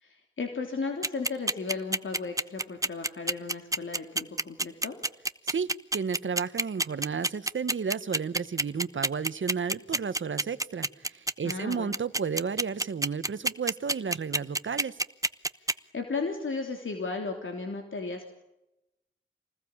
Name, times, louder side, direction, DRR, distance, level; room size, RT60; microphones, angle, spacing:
voice 1, 0.0-5.0 11.4-11.9 15.6-18.3, left 4 dB, 80° left, 4 dB, 3.2 m, -35 dB
sound 1, 1.0-15.7, right 2 dB, 15° right, 0.9 m, -27 dB
voice 2, 5.4-15.0, right 6 dB, 75° right, 13 dB, 1.3 m, -32 dB
27.5 x 20.5 x 8.8 m, 0.89 s
wide cardioid pair, 85°, 20 cm